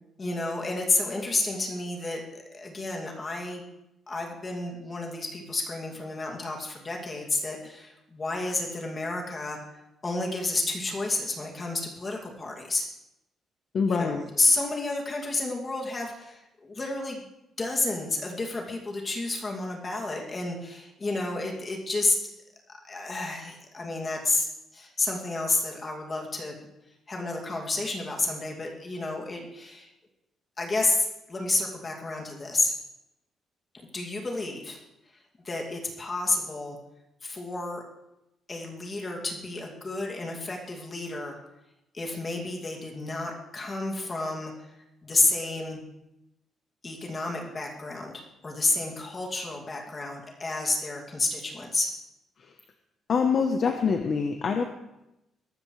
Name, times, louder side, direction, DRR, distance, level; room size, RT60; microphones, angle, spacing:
voice 1, 0.2-3.6 4.1-9.6 10.0-12.9 13.9-17.3 17.6-22.2 22.8-24.5 24.7-26.6 27.1-29.9 30.6-32.7 33.9-34.8 35.4-36.8 37.2-37.8 38.5-41.4 41.9-44.7 45.0-45.8 46.8-51.9, left 2 dB, 25° left, 0 dB, 2.4 m, -30 dB
voice 2, 13.7-14.2 53.1-54.6, left 5 dB, 40° left, 5 dB, 0.9 m, -25 dB
22.5 x 12.5 x 3.2 m, 0.91 s
cardioid pair, 170°, 0 cm